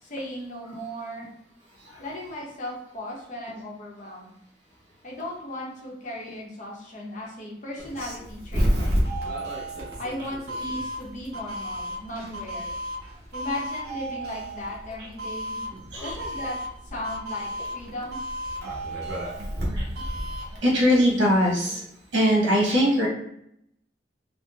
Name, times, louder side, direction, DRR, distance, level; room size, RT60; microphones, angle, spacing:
voice 1, 0.0-1.3 2.0-4.3 5.0-9.4 10.0-12.8 13.3-15.6 16.0-16.6 16.8-18.2, left 1 dB, 40° left, -2 dB, 0.7 m, -36 dB
Doorbell, 7.8-20.6, equal, 60° right, 0.9 m, -31 dB
voice 2, 20.6-21.8 22.1-23.1, equal, 85° right, -4 dB, 1.1 m, -21 dB
3.7 x 2.0 x 2.4 m, 0.75 s
head